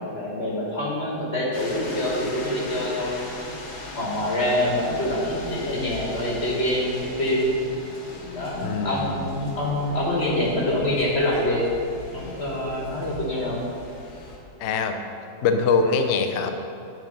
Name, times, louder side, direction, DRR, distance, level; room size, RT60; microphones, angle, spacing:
voice 1, 0.0-3.2 4.0-7.6 8.3-11.6 12.1-13.6, left 1 dB, 40° left, -4 dB, 1.4 m, -25 dB
sound 1, 1.5-14.4, left 2 dB, 65° left, 1.7 m, -39 dB
voice 2, 8.6-9.1 14.6-15.0 15.4-16.5, left 5 dB, 80° left, 7 dB, 0.6 m, -23 dB
9.4 x 4.2 x 5.4 m, 2.6 s
omnidirectional pair, 1.9 m